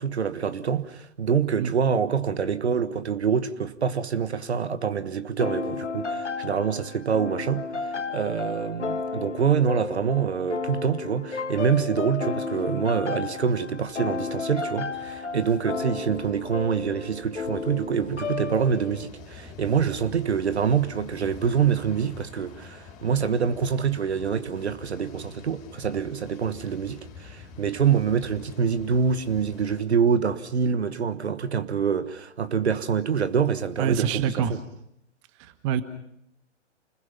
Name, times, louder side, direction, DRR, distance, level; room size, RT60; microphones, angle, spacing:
voice 1, 0.0-34.6, right 7 dB, 60° right, 1.4 m, -26 dB
sound 1, 5.4-19.1, left 5 dB, 70° left, 1.7 m, -33 dB
sound 2, 14.8-29.8, left 5 dB, 20° left, 4.7 m, -47 dB
voice 2, 33.8-34.5 35.4-35.8, right 9 dB, 25° right, 1.3 m, -26 dB
29.0 x 21.0 x 5.8 m
figure-of-eight pair, 125°, 37 cm